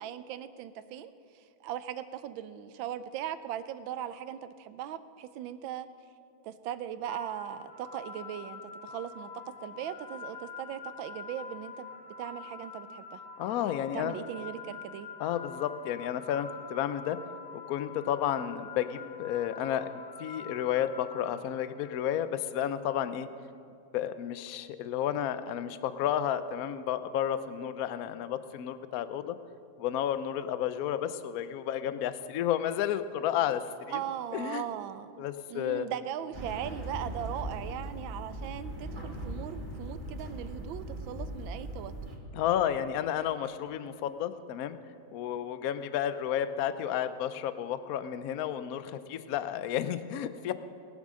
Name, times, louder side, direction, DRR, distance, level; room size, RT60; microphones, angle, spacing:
voice 1, 0.0-5.9 6.4-9.3 9.6-11.9 12.2-13.2 13.9-15.1 33.9-41.9, right 10 dB, 80° right, 12 dB, 1.4 m, -39 dB
sound 1, 7.0-22.2, left 5 dB, 25° left, 1.3 m, -46 dB
voice 2, 13.4-14.2 15.2-17.2 17.7-19.9 20.2-23.3 23.9-29.4 29.8-34.0 34.3-34.6 35.2-35.9 42.3-44.8 45.1-50.5, left 10 dB, 70° left, 12 dB, 0.8 m, -32 dB
sound 2, 36.3-42.2, right 1 dB, 40° right, 3.2 m, -39 dB
19.5 x 7.4 x 6.3 m, 2.4 s
omnidirectional pair, 2.1 m